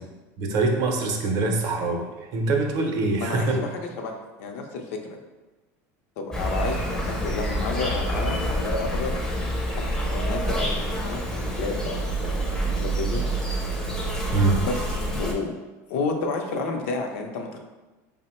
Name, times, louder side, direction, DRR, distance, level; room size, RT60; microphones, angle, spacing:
voice 1, 0.4-2.1 2.3-3.6 14.3-14.6, right 3 dB, 50° right, 2 dB, 0.5 m, -23 dB
voice 2, 3.2-5.2 6.2-9.2 9.7-13.3 14.6-15.5 15.9-17.6, left 3 dB, 80° left, 3 dB, 0.5 m, -31 dB
Insect, 6.3-15.3, right 1 dB, 5° left, 0.4 m, -27 dB
3.5 x 2.0 x 4.2 m, 1.1 s
cardioid pair, 160°, 8 cm